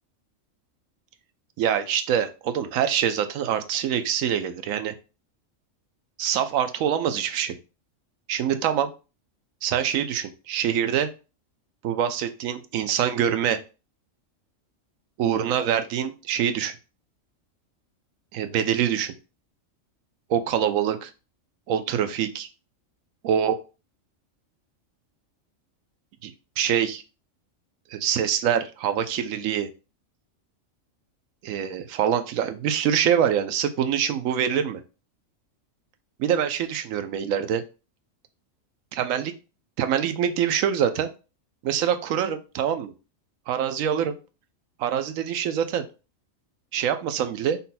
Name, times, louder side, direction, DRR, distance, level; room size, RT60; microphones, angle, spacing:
voice 1, 1.6-4.9 6.2-7.6 8.3-8.9 9.6-11.1 11.8-13.6 15.2-16.8 18.3-19.1 20.3-21.1 21.7-22.5 23.2-23.6 26.2-27.0 27.9-29.7 31.4-34.8 36.2-37.6 38.9-39.3 39.8-41.1 41.6-42.9 43.5-44.2 44.8-45.9 46.7-47.6, right 9 dB, 85° right, 10 dB, 1.0 m, -25 dB
5.4 x 2.2 x 4.1 m, 0.32 s
omnidirectional pair, 1.4 m